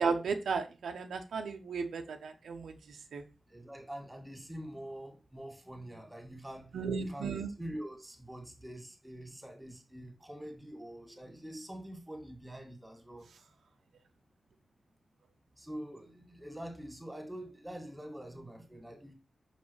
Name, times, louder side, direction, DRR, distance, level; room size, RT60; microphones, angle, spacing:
voice 1, 0.0-3.2 6.7-7.5, right 5 dB, 90° right, 0.8 m, -34 dB
voice 2, 3.5-7.3 7.6-13.3 15.6-19.1, right 1 dB, 5° right, 2.0 m, -45 dB
6.0 x 5.4 x 3.2 m
wide cardioid pair, 115°, 0 cm